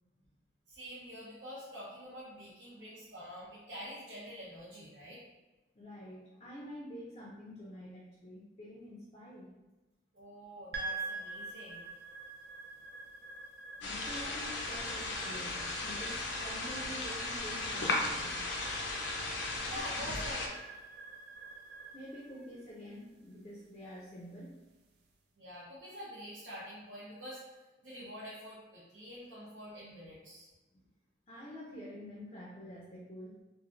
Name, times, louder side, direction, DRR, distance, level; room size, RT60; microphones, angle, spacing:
voice 1, 0.7-5.2 10.1-11.9 14.2-14.3 19.7-20.5 25.4-27.4 27.8-30.5, equal, 80° right, -8 dB, 0.8 m, -46 dB
voice 2, 5.7-9.5 13.8-18.4 19.6-20.1 21.9-24.6 30.7-30.8 31.3-33.4, equal, 30° left, -4 dB, 0.4 m, -48 dB
sound 1, 10.7-25.1, right 3 dB, 60° right, 0.4 m, -47 dB
sound 2, 13.8-20.5, left 2 dB, 85° left, 0.5 m, -36 dB
3.1 x 2.5 x 2.4 m, 1.1 s
head